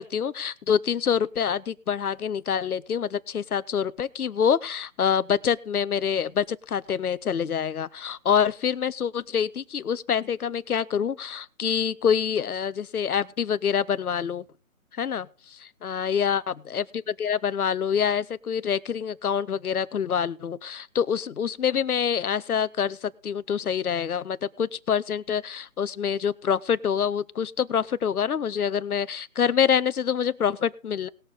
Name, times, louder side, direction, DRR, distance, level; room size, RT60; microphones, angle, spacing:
voice 1, 0.0-14.4 14.9-31.1, left 7 dB, 80° left, 17 dB, 0.8 m, -26 dB
19.5 x 6.7 x 4.0 m, 0.35 s
figure-of-eight pair, 160°, 44 cm